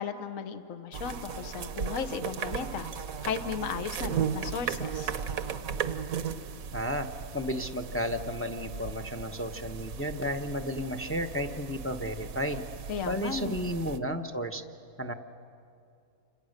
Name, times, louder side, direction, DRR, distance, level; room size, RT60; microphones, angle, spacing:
voice 1, 0.0-2.9 3.2-5.1 12.9-13.7, left 6 dB, 65° left, 10 dB, 1.4 m, -35 dB
sound 1, 0.9-14.0, right 7 dB, 70° right, 1.4 m, -36 dB
voice 2, 6.7-7.1 7.3-12.6 13.1-14.6 15.0-15.1, equal, 10° left, 7 dB, 0.8 m, -33 dB
29.0 x 26.5 x 6.6 m, 2.5 s
omnidirectional pair, 1.5 m